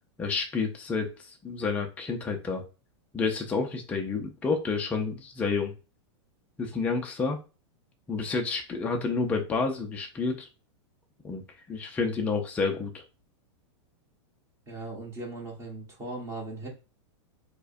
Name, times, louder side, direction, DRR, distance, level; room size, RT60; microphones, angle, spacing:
voice 1, 0.2-1.1 1.4-2.6 3.1-5.7 6.6-7.4 8.1-10.5 11.2-11.4 11.7-13.0, left 4 dB, 10° left, 2 dB, 0.4 m, -29 dB
voice 2, 14.7-16.7, right 2 dB, 20° right, -3 dB, 1.4 m, -38 dB
4.6 x 2.1 x 2.6 m, 0.31 s
supercardioid pair, 160°, 16 cm